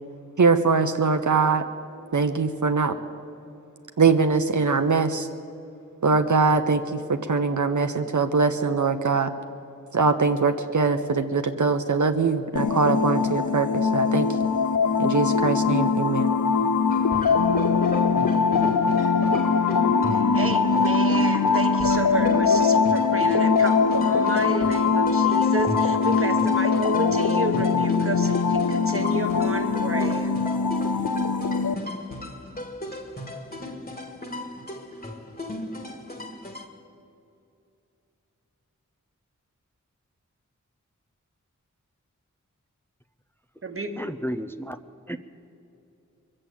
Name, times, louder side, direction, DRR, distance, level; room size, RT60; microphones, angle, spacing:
voice 1, 0.4-1.6 2.1-2.9 4.0-5.3 6.0-9.3 9.9-14.3 15.0-16.3, right 4 dB, 70° right, 7 dB, 0.7 m, -22 dB
sound 1, 12.6-31.7, left 5 dB, 70° left, 0.7 m, -22 dB
sound 2, 16.9-36.7, left 1 dB, 30° left, 1.7 m, -35 dB
voice 2, 20.1-30.5 43.6-43.9, right 2 dB, 45° right, 5 dB, 1.4 m, -31 dB
voice 3, 44.0-44.8 45.1-45.2, equal, 5° left, 9 dB, 0.5 m, -32 dB
22.0 x 7.6 x 8.5 m, 2.7 s
wide cardioid pair, 45°, 31 cm